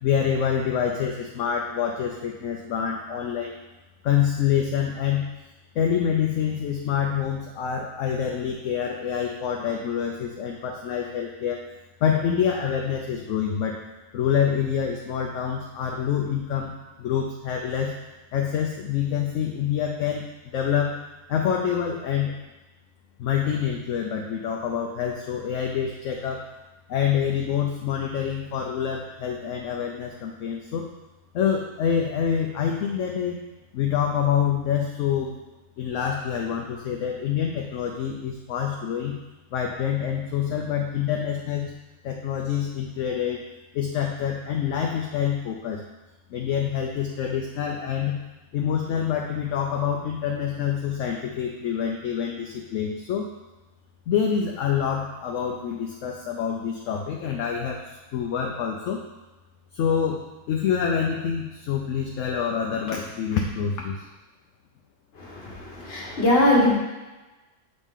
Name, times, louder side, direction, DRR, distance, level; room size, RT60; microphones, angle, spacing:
voice 1, 0.0-3.5 4.0-5.3 5.7-11.6 12.0-13.8 14.1-16.7 17.0-17.9 18.3-21.0 21.3-22.3 23.2-26.5 26.9-30.9 31.3-33.4 33.7-35.4 35.8-39.2 39.5-41.7 42.0-43.4 43.7-45.8 46.3-48.2 48.5-53.3 54.1-57.8 58.1-59.0 59.7-64.0, left 8 dB, 65° left, 1 dB, 0.8 m, -26 dB
voice 2, 65.2-66.8, left 1 dB, 45° left, -2 dB, 1.4 m, -21 dB
6.8 x 4.1 x 3.6 m, 1.1 s
omnidirectional pair, 1.6 m